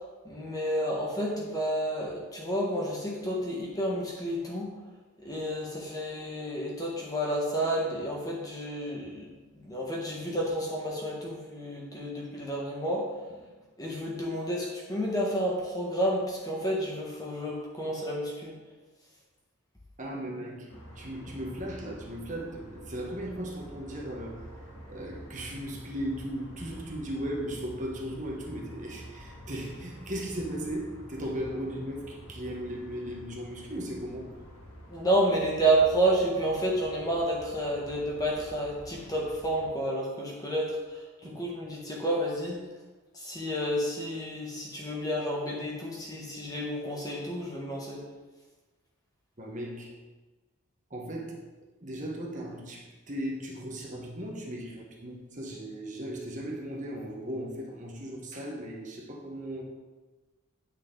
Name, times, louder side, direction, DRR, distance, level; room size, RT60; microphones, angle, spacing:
voice 1, 0.2-4.8 5.2-9.3 9.6-13.1 13.8-18.5 34.9-42.6 43.1-48.0, right 1 dB, 15° left, -3 dB, 1.5 m, -30 dB
voice 2, 20.0-24.5 24.9-34.3 41.2-41.4 49.4-49.9 50.9-51.5 51.8-59.6, equal, 35° right, -2 dB, 1.3 m, -37 dB
sound 1, 20.7-39.7, equal, 90° left, 2.2 m, -48 dB
9.7 x 6.3 x 3.9 m, 1.2 s
head